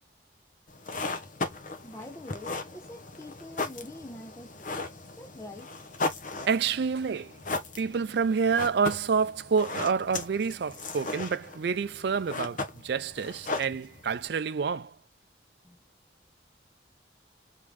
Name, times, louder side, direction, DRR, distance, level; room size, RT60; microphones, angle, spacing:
sound 1, 0.7-14.3, left 3 dB, 45° left, 0.9 m, -37 dB
voice 1, 1.8-4.8 5.2-5.7 15.6-15.8, left 1 dB, 15° left, 0.7 m, -45 dB
voice 2, 6.4-7.4 7.8-15.0, right 5 dB, 60° right, 0.4 m, -28 dB
3.7 x 3.5 x 3.2 m
head